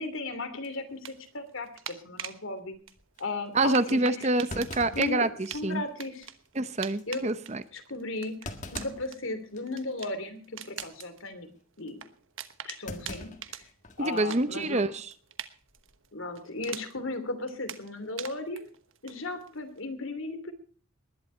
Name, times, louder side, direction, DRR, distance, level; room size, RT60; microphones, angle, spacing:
voice 1, 0.0-2.8 3.2-4.3 4.9-5.3 5.5-6.3 7.1-7.3 7.7-11.5 11.8-12.0 12.6-13.7 14.0-14.9 16.1-18.7 19.0-20.5, left 2 dB, 70° left, 2.8 m, -36 dB
sound 1, 0.6-2.4 2.9-17.1 17.5-19.8, right 10 dB, 70° right, 1.2 m, -44 dB
Thump thud, 2.7-3.0 3.6-3.7 4.5-5.8 6.2-6.3 6.8-7.0 8.4-9.1 9.6-9.8 10.6-10.9 12.9-14.1 14.4-14.5 15.6-16.0, left 2 dB, 35° left, 1.7 m, -42 dB
voice 2, 3.5-5.3 5.6-5.8 6.6-7.6 14.0-15.1, right 2 dB, 30° right, 0.8 m, -26 dB
20.5 x 11.0 x 4.3 m
head